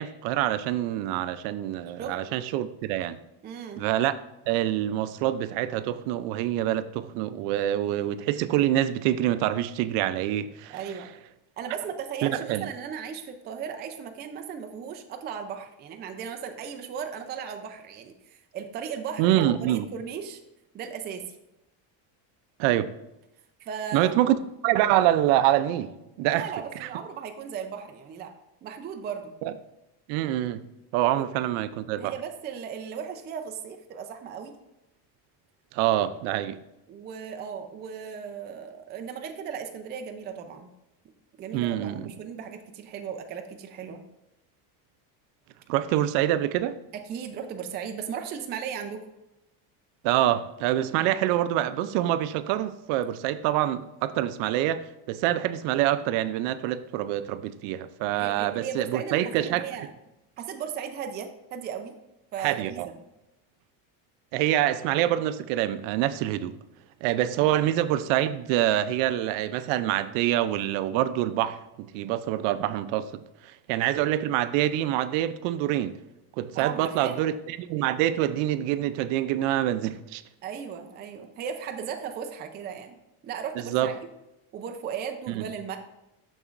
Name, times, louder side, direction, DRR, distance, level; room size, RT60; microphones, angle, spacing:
voice 1, 0.0-3.2 3.8-4.1 4.5-10.8 12.2-12.7 19.2-19.9 22.6-22.9 23.9-26.5 26.8-26.9 29.4-29.5 30.1-30.6 30.9-32.1 35.7-36.6 41.5-42.1 45.7-46.8 50.0-59.7 62.4-62.9 64.3-66.6 67.0-76.0 76.4-80.2 83.7-83.9 85.3-85.4, right 13 dB, 80° right, 0.5 m, -26 dB
voice 2, 3.4-3.8 10.7-11.1 11.6-20.4 20.7-21.4 23.6-24.1 26.3-28.3 28.6-29.3 32.0-34.5 36.9-40.7 41.4-44.0 46.9-49.1 58.1-59.9 60.4-62.0 62.3-62.9 67.4-67.5 76.5-77.2 80.4-82.9 83.2-83.9 84.5-85.8, right 7 dB, 25° right, 0.4 m, -36 dB
6.8 x 6.2 x 2.4 m
cardioid pair, 150°, 44 cm